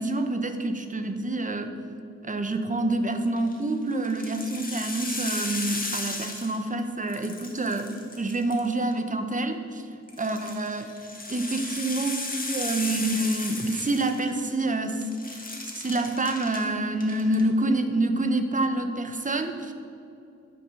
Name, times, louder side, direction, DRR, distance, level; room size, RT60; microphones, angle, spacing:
voice 1, 0.0-1.7 2.2-9.9 10.2-10.9 11.3-15.5 15.8-19.7, right 2 dB, 25° right, 7 dB, 0.8 m, -27 dB
sound 1, 3.2-3.6 4.0-6.8 7.1-8.9 10.1-14.6 14.9-16.6 17.0-17.4, left 2 dB, 30° left, 1.4 m, -35 dB
9.2 x 6.2 x 6.5 m, 2.5 s
wide cardioid pair, 110°, 29 cm